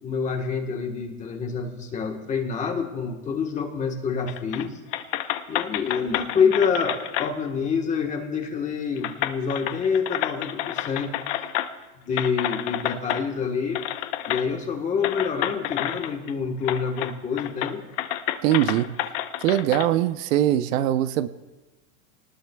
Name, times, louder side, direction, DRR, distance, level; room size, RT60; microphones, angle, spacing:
voice 1, 0.0-4.8 5.5-11.1 12.0-13.8 14.2-17.8, left 6 dB, 15° left, 3 dB, 1.3 m, -27 dB
sound 1, 4.3-4.7 4.9-7.3 8.4-8.5 9.0-11.8 12.2-13.2 13.7-14.4 15.0-16.3 16.6-17.1 17.4-19.9, left 13 dB, 45° left, 0.8 m, -29 dB
voice 2, 18.4-19.0 19.4-21.3, right 12 dB, 65° right, 12 dB, 0.8 m, -22 dB
26.0 x 19.5 x 2.3 m, 1.1 s
supercardioid pair, 165°, 42 cm